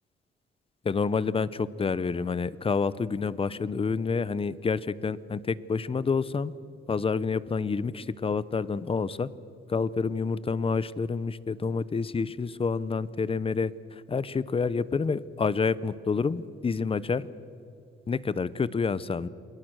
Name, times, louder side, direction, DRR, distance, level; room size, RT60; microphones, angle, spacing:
voice 1, 0.8-6.5 6.9-9.3 9.7-17.3 18.1-19.3, left 5 dB, 30° left, 18 dB, 0.8 m, -28 dB
29.0 x 21.5 x 6.3 m, 2.6 s
cardioid pair, 90°, 20 cm